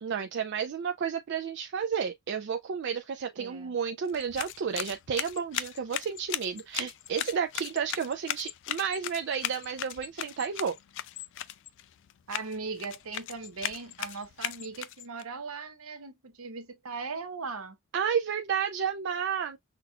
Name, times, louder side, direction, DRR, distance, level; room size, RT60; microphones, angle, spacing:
voice 1, 0.0-10.8 17.9-19.6, right 7 dB, 50° right, 0.4 m, -31 dB
voice 2, 3.4-3.7 12.3-17.8, right 4 dB, 70° right, 0.8 m, -39 dB
sound 1, 4.0-15.2, left 12 dB, 55° left, 0.3 m, -38 dB
5.9 x 2.4 x 2.2 m
head